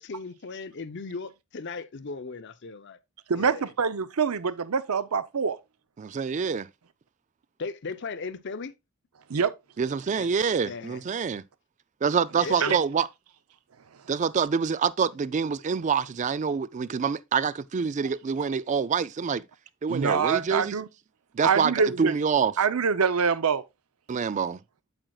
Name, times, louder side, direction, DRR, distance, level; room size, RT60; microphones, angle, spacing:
voice 1, 0.0-3.0 3.3-3.7 7.6-8.7 10.2-10.3 10.7-11.0 12.4-12.8, left 4 dB, 55° left, 0.7 m, -37 dB
voice 2, 3.3-5.6 9.3-9.5 12.6-12.8 19.9-20.9 21.4-22.1 22.6-23.6, right 6 dB, 90° right, 0.6 m, -25 dB
voice 3, 6.0-6.7 9.8-11.4 12.0-13.1 14.1-19.5 19.8-20.8 21.3-21.7 22.0-22.5 24.1-24.6, right 6 dB, 35° right, 0.3 m, -26 dB
8.8 x 7.6 x 2.3 m
head